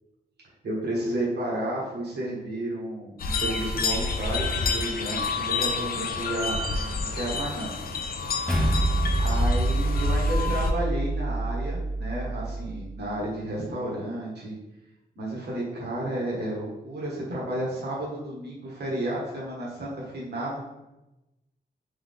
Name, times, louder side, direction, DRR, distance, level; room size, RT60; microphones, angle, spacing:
voice 1, 0.6-7.7 9.2-14.5 15.1-20.6, right 1 dB, 75° right, -5 dB, 1.3 m, -32 dB
sound 1, 3.2-10.7, left 4 dB, 60° left, 0.5 m, -29 dB
sound 2, 8.5-13.0, right 2 dB, 5° left, 0.8 m, -27 dB
3.5 x 3.2 x 3.6 m, 0.97 s
wide cardioid pair, 155°, 17 cm